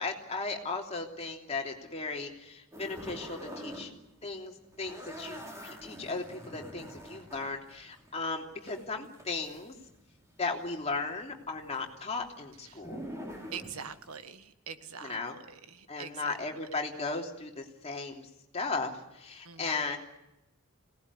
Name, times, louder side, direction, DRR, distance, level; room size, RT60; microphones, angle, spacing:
voice 1, 0.0-3.9 4.2-9.7 10.4-13.0 15.0-15.4 15.9-18.3 18.5-20.0, left 3 dB, 30° left, 1 dB, 3.2 m, -36 dB
sound 1, 2.7-3.9 4.2-10.3 10.6-14.2, equal, 15° right, 5.9 m, -45 dB
voice 2, 13.5-15.2 15.5-16.4 19.4-19.9, right 6 dB, 90° right, 10 dB, 1.6 m, -44 dB
24.5 x 19.0 x 9.8 m, 0.91 s
head